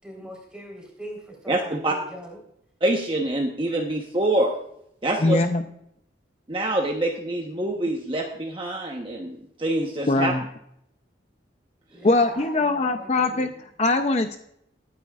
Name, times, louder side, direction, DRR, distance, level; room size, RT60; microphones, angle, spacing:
voice 1, 0.0-2.4 11.9-13.5, equal, 5° right, -1 dB, 3.8 m, -41 dB
voice 2, 1.5-2.0 2.8-4.5 5.0-5.5 6.5-10.3, right 1 dB, 30° right, 1 dB, 1.0 m, -25 dB
voice 3, 5.2-5.6 10.1-10.4 12.0-13.5 13.8-14.4, left 2 dB, 35° left, 7 dB, 0.5 m, -21 dB
21.0 x 9.5 x 2.4 m, 0.75 s
head